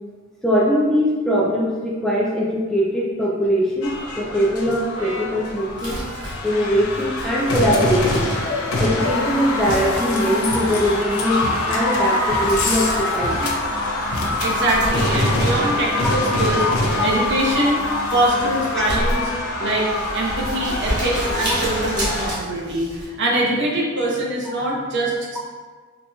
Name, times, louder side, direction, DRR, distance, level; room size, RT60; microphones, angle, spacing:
voice 1, 0.4-6.0 6.4-8.3 8.8-13.5 17.0-17.1 17.9-18.0, equal, ahead, -5 dB, 0.3 m, -21 dB
sound 1, 3.8-22.4, left 2 dB, 90° left, 0.6 m, -24 dB
Brass instrument, 4.9-9.2, left 1 dB, 80° right, 0.9 m, -41 dB
Crumpling crinkling, 5.7-23.1, equal, 20° right, 1.3 m, -33 dB
voice 2, 14.4-16.6 17.0-17.8 18.1-19.3 19.6-25.4, right 1 dB, 60° right, -3 dB, 0.8 m, -23 dB
4.2 x 2.7 x 2.3 m, 1.5 s
head